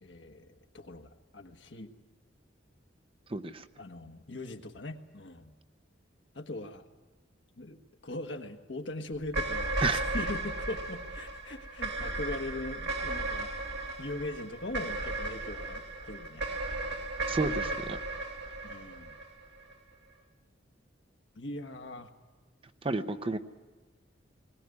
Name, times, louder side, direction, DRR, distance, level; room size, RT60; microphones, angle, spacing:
voice 1, 0.0-1.9 3.8-5.5 6.3-6.8 7.6-13.5 14.0-16.5 18.6-19.1 21.3-22.1, left 2 dB, 65° left, 5 dB, 1.5 m, -41 dB
voice 2, 3.3-3.6 9.8-10.1 17.3-18.0 22.8-23.4, right 3 dB, 30° right, 9 dB, 0.8 m, -31 dB
sound 1, 9.3-19.7, right 2 dB, 65° right, 2.1 m, -35 dB
21.0 x 18.5 x 9.8 m, 1.3 s
head